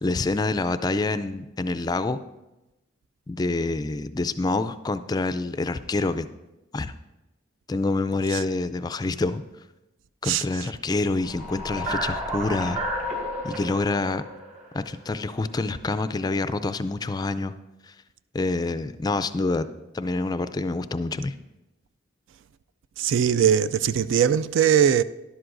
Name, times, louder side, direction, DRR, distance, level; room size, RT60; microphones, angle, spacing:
voice 1, 0.0-2.2 3.3-6.3 6.7-6.9 7.7-9.4 10.2-12.8 13.4-14.2 14.7-17.5 17.9-18.0 18.3-19.7 19.9-21.3, left 3 dB, 20° left, 0.3 m, -27 dB
voice 2, 10.2-10.7 23.0-25.0, right 8 dB, 75° right, 0.3 m, -21 dB
sound 1, 11.2-15.4, equal, 40° right, 3.4 m, -32 dB
12.5 x 11.0 x 2.6 m
head